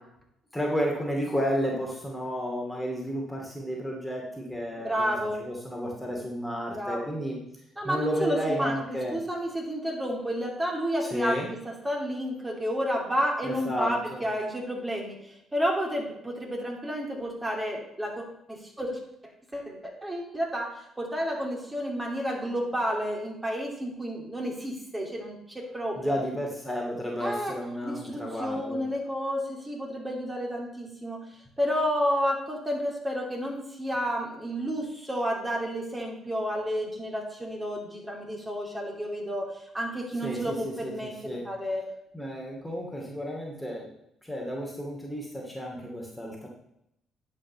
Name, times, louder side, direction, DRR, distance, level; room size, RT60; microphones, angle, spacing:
voice 1, 0.5-7.4 7.8-9.2 11.0-11.5 13.4-14.2 26.0-28.8 40.2-41.4 42.1-43.9 44.2-46.5, equal, 5° left, -1 dB, 2.4 m, -32 dB
voice 2, 4.8-5.4 6.7-7.1 7.8-8.7 9.1-11.6 11.8-15.1 15.5-19.0 19.5-20.7 21.0-25.4 25.7-26.2 27.2-27.5 27.8-31.2 31.6-39.5 39.7-41.8, equal, 15° right, -1 dB, 2.8 m, -31 dB
10.0 x 5.4 x 5.4 m, 0.79 s
figure-of-eight pair, 45°, 0 cm